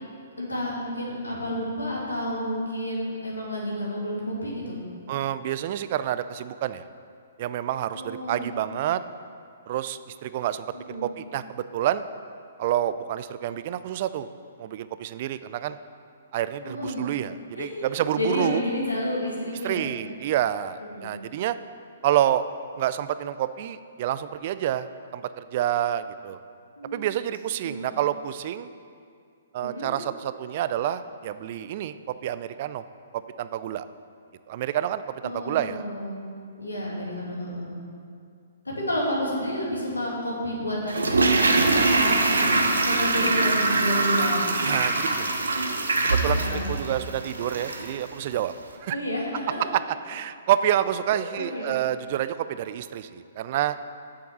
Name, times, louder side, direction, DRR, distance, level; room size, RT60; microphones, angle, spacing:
voice 1, 0.4-4.8 7.9-8.5 10.7-11.1 16.6-17.1 17.5-19.9 20.9-21.1 26.8-27.1 27.6-27.8 29.6-29.9 35.2-36.2 36.6-37.7 38.6-44.5 46.3-46.7 48.9-49.6 51.4-51.8, left 1 dB, 85° left, -4 dB, 2.6 m, -30 dB
voice 2, 5.1-6.8 7.4-9.0 9.7-12.0 12.6-14.3 14.6-15.8 16.3-18.6 19.6-21.6 22.0-22.4 22.8-24.9 25.1-26.4 26.9-28.7 29.5-32.0 32.2-32.8 33.1-33.9 34.5-35.8 44.6-45.4 46.0-48.5 48.8-49.0 49.7-49.8 50.1-53.8, right 11 dB, 45° right, 13 dB, 0.4 m, -28 dB
Toilet flush, 40.9-48.0 48.2-48.3, right 3 dB, 75° right, 1.0 m, -23 dB
7.6 x 7.0 x 6.9 m, 2.3 s
figure-of-eight pair, 120°, 0 cm